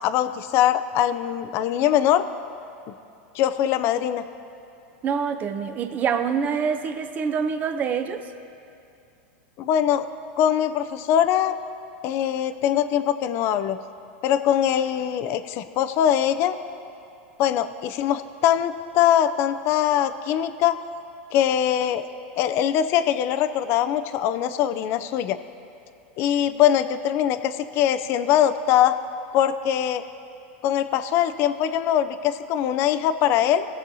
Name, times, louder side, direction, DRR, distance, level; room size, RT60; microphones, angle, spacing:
voice 1, 0.0-2.2 3.3-4.2 9.6-10.1 10.4-11.6 12.0-13.8 14.2-16.6 17.4-20.8 21.3-22.1 22.4-25.4 26.2-29.0 29.3-30.0 30.6-33.7, left 10 dB, 40° left, 12 dB, 0.4 m, -22 dB
voice 2, 5.0-8.3, right 6 dB, 25° right, 8 dB, 0.6 m, -26 dB
18.5 x 6.9 x 2.7 m, 2.6 s
supercardioid pair, 140°, 6 cm